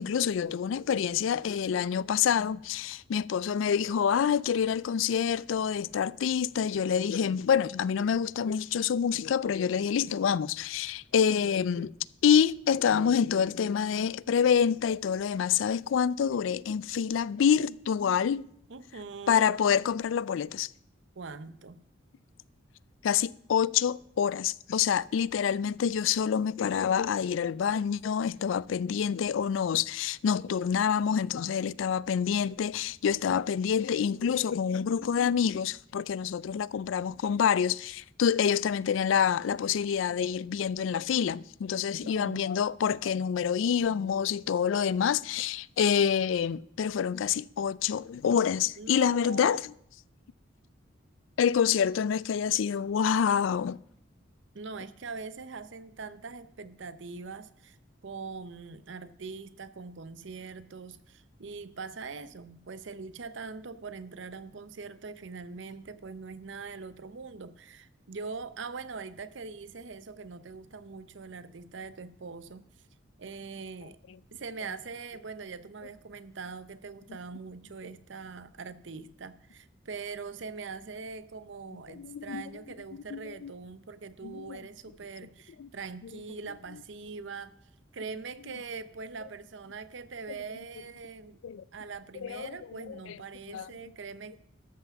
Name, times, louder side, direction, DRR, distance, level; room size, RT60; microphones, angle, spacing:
voice 1, 0.0-11.9 12.2-18.5 19.3-20.7 23.0-49.7 51.4-53.8 81.9-82.4 83.1-83.5 84.2-84.6 85.6-85.7 91.4-91.6 92.2-92.5 92.9-93.0 93.5-93.7, left 7 dB, 75° left, 0.3 m, -27 dB
voice 2, 18.7-19.6 21.2-21.8 41.9-42.4 48.8-49.6 54.5-57.8 58.0-72.7 73.2-74.0 74.3-87.5 87.9-91.4 91.7-94.4, right 4 dB, 65° right, 0.7 m, -42 dB
13.0 x 5.8 x 6.9 m
head